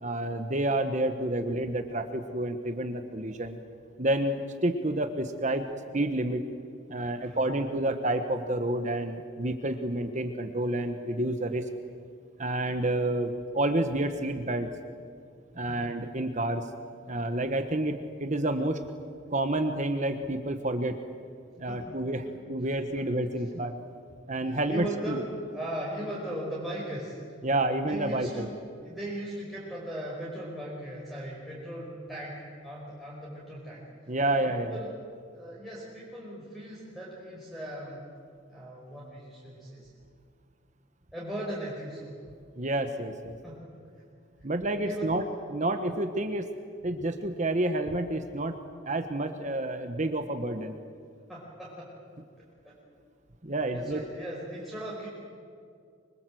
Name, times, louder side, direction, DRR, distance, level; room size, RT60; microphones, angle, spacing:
voice 1, 0.0-3.6 4.0-5.6 5.9-6.4 6.9-11.7 12.4-14.7 15.5-16.7 17.1-18.8 19.3-21.0 21.6-23.7 24.3-25.2 27.4-28.5 34.1-34.8 42.6-43.4 44.4-46.5 46.8-48.6 48.8-50.7 53.4-54.0, right 1 dB, 35° right, 7 dB, 1.3 m, -29 dB
voice 2, 21.7-22.4 23.0-23.1 24.4-27.4 27.8-35.0 35.3-38.0 38.5-39.9 41.1-42.1 43.4-43.8 44.4-44.5 44.8-45.2 51.3-52.0 52.6-52.8 53.7-55.1, right 1 dB, ahead, -6 dB, 5.3 m, -39 dB
25.5 x 24.5 x 7.9 m, 2.3 s
head